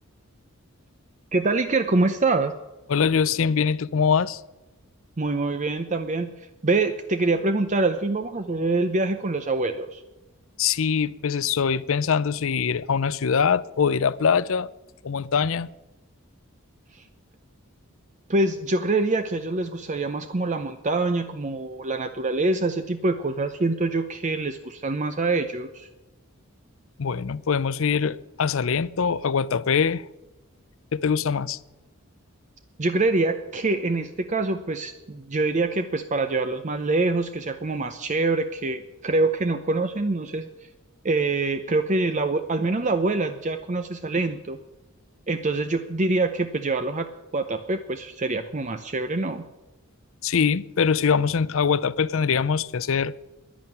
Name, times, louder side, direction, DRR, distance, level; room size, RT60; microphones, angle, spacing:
voice 1, 1.3-2.5 5.2-6.3 6.6-10.0 16.9-17.0 18.3-25.9 32.8-40.5 41.0-44.6 45.3-47.1 47.3-49.4, right 3 dB, 35° right, 0.6 m, -25 dB
voice 2, 2.9-4.4 10.6-14.7 15.0-15.7 27.0-30.0 30.9-31.6 50.2-53.1, left 6 dB, 65° left, 0.5 m, -23 dB
11.0 x 10.5 x 9.3 m
head